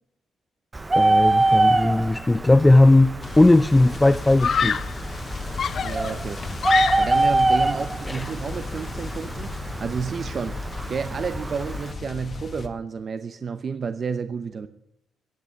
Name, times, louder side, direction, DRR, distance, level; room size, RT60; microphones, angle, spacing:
Bird, 0.7-11.9, right 2 dB, 20° right, 0.9 m, -25 dB
voice 1, 0.9-4.8 8.1-8.3, left 2 dB, 15° left, 0.5 m, -18 dB
Screaming, 2.8-3.3 4.4-5.0 5.6-7.3, left 7 dB, 55° left, 0.8 m, -26 dB
sound 1, 3.2-12.7, left 3 dB, 40° left, 1.8 m, -35 dB
voice 2, 5.8-6.5 7.0-9.5 9.8-10.6 10.9-14.7, right 5 dB, 45° right, 0.8 m, -30 dB
16.0 x 8.3 x 9.8 m
cardioid pair, 90°, 0 cm